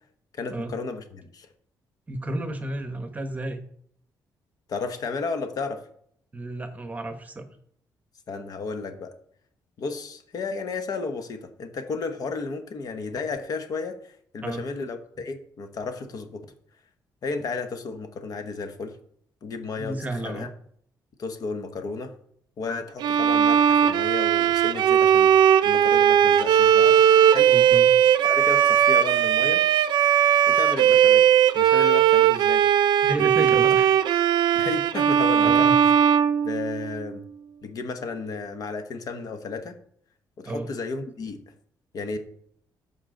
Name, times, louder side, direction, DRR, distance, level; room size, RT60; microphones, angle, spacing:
voice 1, 0.3-1.5 4.7-5.9 8.3-9.1 9.8-16.5 17.2-19.0 19.4-20.5 21.2-22.1 22.6-27.0 27.3-27.5 28.2-29.6 30.5-32.6 33.4-33.5 34.5-35.9 36.4-37.2 37.6-39.8 40.4-41.4 41.9-42.2, left 4 dB, 55° left, 7 dB, 1.1 m, -33 dB
voice 2, 2.1-3.6 6.3-7.5 14.4-14.7 19.8-20.5 27.5-28.0 33.0-34.0 35.4-35.8 40.4-40.7, right 2 dB, 20° right, 7 dB, 1.1 m, -32 dB
Bowed string instrument, 23.0-37.1, right 9 dB, 75° right, 0.5 m, -18 dB
14.0 x 5.6 x 3.8 m, 0.65 s
cardioid pair, 135°, 8 cm